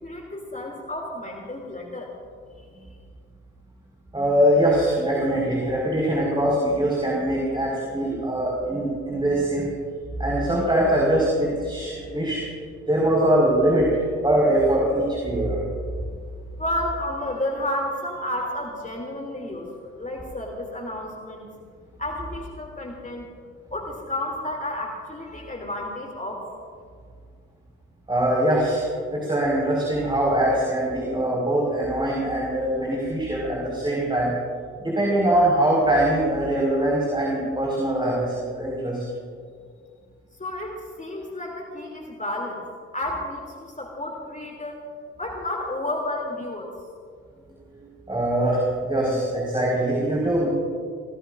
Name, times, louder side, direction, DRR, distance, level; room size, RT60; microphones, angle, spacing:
voice 1, 0.0-2.1 16.6-21.5 22.0-23.3 23.7-26.5 40.4-42.6 42.9-44.8 45.2-46.8, left 1 dB, 20° left, 0 dB, 3.0 m, -31 dB
voice 2, 4.1-9.7 10.2-12.5 12.9-13.9 14.2-15.6 28.1-34.3 34.8-39.0 47.7-50.5, right 1 dB, 10° right, -3 dB, 5.2 m, -22 dB
27.5 x 19.5 x 2.6 m, 2.1 s
figure-of-eight pair, 40°, 38 cm